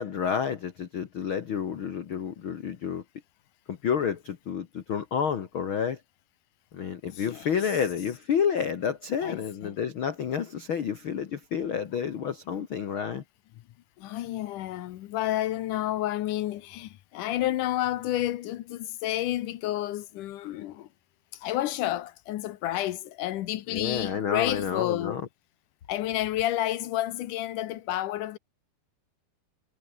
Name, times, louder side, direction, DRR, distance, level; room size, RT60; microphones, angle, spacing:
voice 1, 0.0-3.0 3.7-6.0 6.7-13.2 23.7-25.2, left 7 dB, 85° left, 1.1 m, -30 dB
voice 2, 7.0-7.9 9.2-9.8 14.0-20.9 21.3-25.3 25.9-28.4, left 14 dB, 70° left, 2.1 m, -30 dB
omnidirectional pair, 4.6 m